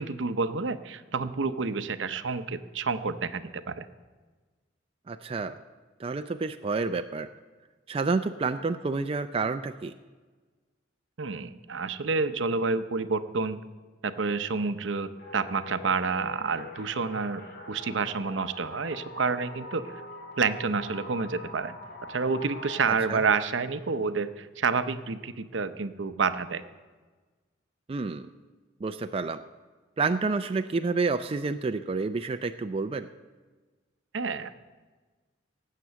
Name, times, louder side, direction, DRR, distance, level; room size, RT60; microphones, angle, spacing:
voice 1, 0.0-3.9 11.2-13.6 14.0-20.0 20.4-21.8 22.1-26.6 34.1-34.5, right 4 dB, 70° right, 12 dB, 0.7 m, -29 dB
voice 2, 5.1-5.6 6.0-7.3 7.9-9.9 23.1-23.2 27.9-28.3 28.8-29.4 30.0-33.1, right 4 dB, 30° right, 8 dB, 0.4 m, -29 dB
sound 1, 15.2-23.2, left 2 dB, 60° left, 2.3 m, -44 dB
18.0 x 7.6 x 6.9 m, 1.3 s
head